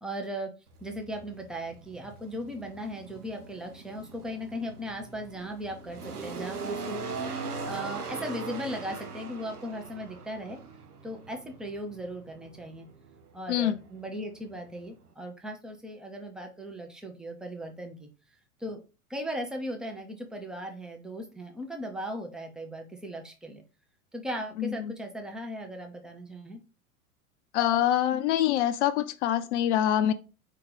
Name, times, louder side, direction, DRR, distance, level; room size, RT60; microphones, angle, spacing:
voice 1, 0.0-0.5 0.8-10.6 11.0-12.9 13.3-18.1 18.6-18.8 19.1-23.6 24.1-26.6, equal, ahead, 0.6 m, -37 dB
sound 1, 0.7-15.1, right 4 dB, 90° right, 0.8 m, -41 dB
voice 2, 24.6-24.9 27.5-30.1, left 11 dB, 50° left, 0.6 m, -25 dB
4.5 x 2.8 x 3.7 m
figure-of-eight pair, 95°, 45 cm